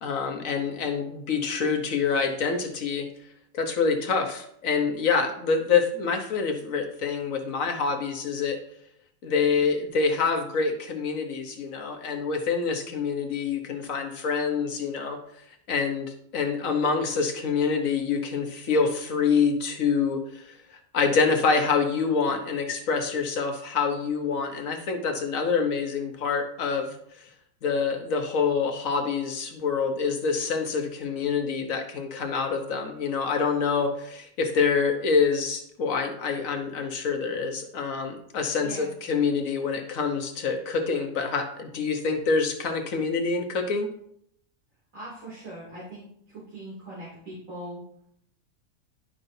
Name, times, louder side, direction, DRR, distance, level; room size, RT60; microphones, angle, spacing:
voice 1, 0.0-3.1 3.5-8.6 9.2-15.2 15.7-20.4 20.7-26.9 27.6-43.9, left 5 dB, 60° left, 4 dB, 1.3 m, -26 dB
voice 2, 44.9-47.8, right 1 dB, 55° right, -8 dB, 3.0 m, -41 dB
11.0 x 5.5 x 2.7 m, 0.68 s
omnidirectional pair, 1.6 m